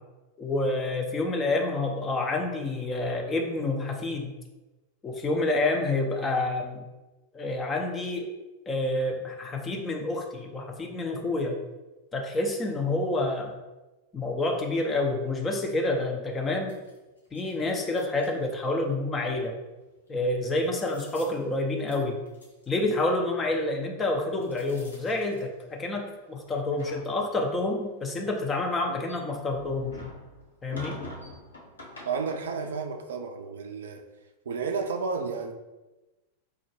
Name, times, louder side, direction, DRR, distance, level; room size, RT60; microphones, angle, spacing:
voice 1, 0.4-4.3 5.0-6.8 7.3-8.3 8.7-11.6 12.1-13.5 14.1-16.7 17.3-19.6 20.1-22.2 22.7-30.0 30.6-31.0, left 2 dB, 20° left, 0.4 m, -28 dB
sound 1, 16.7-17.5 17.9-18.7 19.9-20.1 20.6-21.4 21.8-22.0 22.3-22.7 24.2-26.0 26.4-27.6 28.2-32.7, left 1 dB, 75° left, 0.7 m, -46 dB
voice 2, 32.1-34.0 34.5-35.5, right 5 dB, 65° right, 0.3 m, -31 dB
4.7 x 2.1 x 2.9 m
figure-of-eight pair, 90°, 0 cm